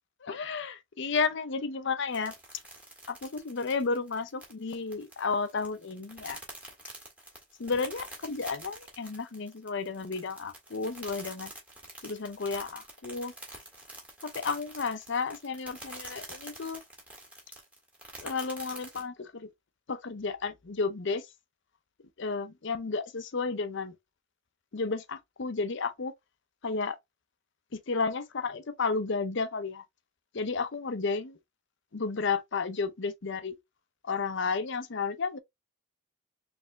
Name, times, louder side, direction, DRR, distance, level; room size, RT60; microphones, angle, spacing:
voice 1, 0.3-2.3 3.1-6.4 7.6-11.5 12.0-13.3 14.2-16.8 18.2-19.5 19.9-21.3 22.2-23.9 24.7-26.1 26.6-27.0 27.7-29.8 30.3-31.4 31.9-33.5 34.0-35.4, left 4 dB, 60° left, 0.6 m, -32 dB
sound 1, 2.1-19.0, right 1 dB, 5° right, 1.7 m, -46 dB
4.3 x 3.4 x 2.8 m
head